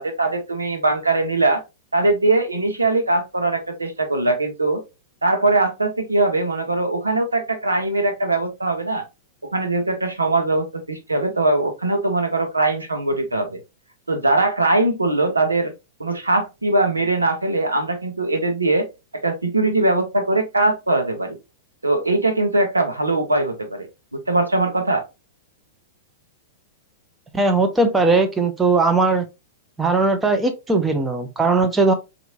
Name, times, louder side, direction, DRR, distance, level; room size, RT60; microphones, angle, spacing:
voice 1, 0.0-1.6 1.9-4.8 5.2-9.0 9.5-13.6 14.1-15.7 16.0-18.9 19.1-21.4 21.8-25.0, right 2 dB, 85° right, 0.8 m, -21 dB
voice 2, 27.3-29.2 29.8-31.9, right 3 dB, 10° right, 0.7 m, -19 dB
4.1 x 2.6 x 2.7 m
figure-of-eight pair, 100°, 0 cm